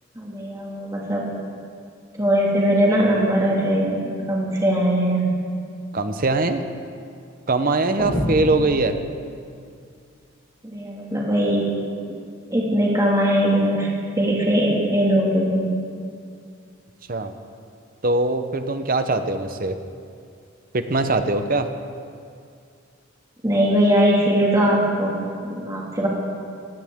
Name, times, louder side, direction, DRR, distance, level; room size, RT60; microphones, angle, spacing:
voice 1, 0.2-1.3 2.2-5.3 10.6-11.7 12.1-12.2 12.5-13.9 14.2-15.7 23.4-26.1, equal, 15° right, -4 dB, 2.2 m, -20 dB
voice 2, 5.9-6.6 7.5-8.9 17.1-17.3 18.0-19.8 20.7-21.7, right 2 dB, 40° right, 8 dB, 0.8 m, -22 dB
sound 1, 8.0-9.6, equal, 20° left, 2.2 m, -28 dB
18.0 x 16.5 x 3.7 m, 2.3 s
head